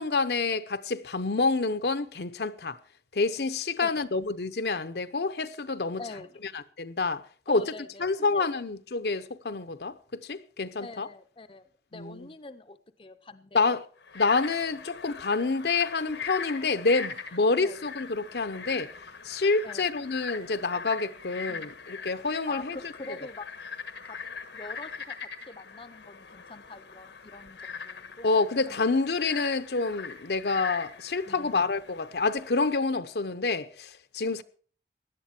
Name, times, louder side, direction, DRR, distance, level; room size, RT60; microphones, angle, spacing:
voice 1, 0.0-2.8 3.1-6.0 6.5-7.6 8.0-11.1 11.9-12.3 13.5-13.8 14.1-18.9 19.2-22.9 28.2-34.4, left 3 dB, 70° left, 0.8 m, -28 dB
voice 2, 6.0-6.4 7.5-8.5 10.8-13.7 17.6-17.8 19.6-19.9 21.5-21.7 22.5-23.5 24.0-24.2 24.5-28.3 28.7-28.8 31.3-31.7, left 2 dB, 30° left, 0.6 m, -44 dB
Frog, 14.0-32.8, left 5 dB, 90° left, 1.5 m, -41 dB
17.0 x 11.0 x 4.4 m
head